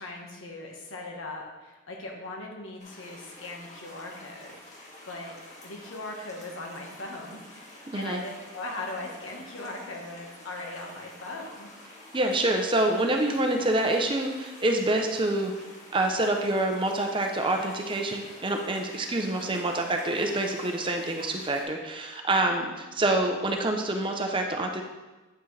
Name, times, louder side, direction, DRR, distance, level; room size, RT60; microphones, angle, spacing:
voice 1, 0.0-5.3 5.6-11.7, left 2 dB, 80° left, 0 dB, 1.5 m, -39 dB
sound 1, 2.8-21.6, left 1 dB, 35° left, 1.8 m, -48 dB
voice 2, 7.9-8.2 12.1-15.5 15.9-24.8, right 2 dB, 25° right, 3 dB, 0.6 m, -26 dB
8.6 x 5.8 x 3.3 m, 1.2 s
head